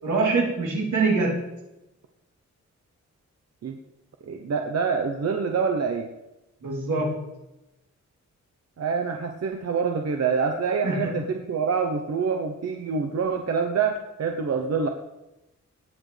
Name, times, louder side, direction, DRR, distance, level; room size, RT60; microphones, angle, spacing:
voice 1, 0.0-1.4 6.6-7.3 10.8-11.2, right 3 dB, 85° right, -3 dB, 3.5 m, -24 dB
voice 2, 4.2-6.1 8.8-14.9, right 5 dB, 60° right, 4 dB, 0.9 m, -26 dB
18.0 x 8.7 x 3.4 m, 0.93 s
wide cardioid pair, 175°, 29 cm